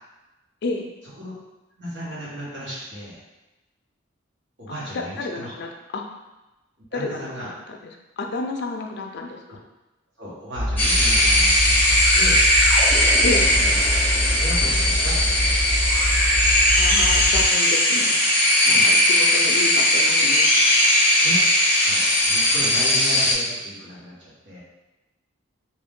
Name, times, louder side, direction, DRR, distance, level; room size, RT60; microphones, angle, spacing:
voice 1, 1.8-3.2 4.6-5.5 6.9-7.5 9.5-9.6 10.2-12.4 13.5-13.7 14.2-15.7 18.6-18.9 21.2-21.4 21.8-24.6, equal, 60° right, -8 dB, 1.4 m, -35 dB
voice 2, 4.9-6.1 6.9-7.8 8.2-9.6 13.2-13.6 16.8-18.2 18.7-20.5, left 3 dB, 60° left, 2 dB, 0.4 m, -30 dB
sound 1, 10.5-17.5, equal, 35° right, 0.4 m, -25 dB
sound 2, 10.8-23.3, left 1 dB, 10° left, 0.7 m, -18 dB
3.0 x 2.6 x 3.6 m, 1.0 s
head